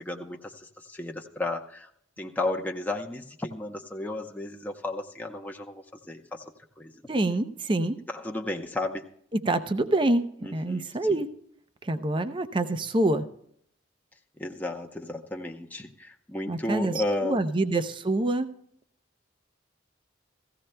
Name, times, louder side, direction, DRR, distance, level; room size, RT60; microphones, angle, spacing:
voice 1, 0.0-1.9 2.2-6.4 6.8-6.9 8.1-9.1 10.4-11.2 14.4-17.7, left 2 dB, 10° left, 1 dB, 0.7 m, -33 dB
voice 2, 7.1-8.0 9.3-11.3 11.8-13.3 16.5-18.5, right 2 dB, 25° right, 10 dB, 0.5 m, -26 dB
17.0 x 15.0 x 2.2 m, 0.68 s
head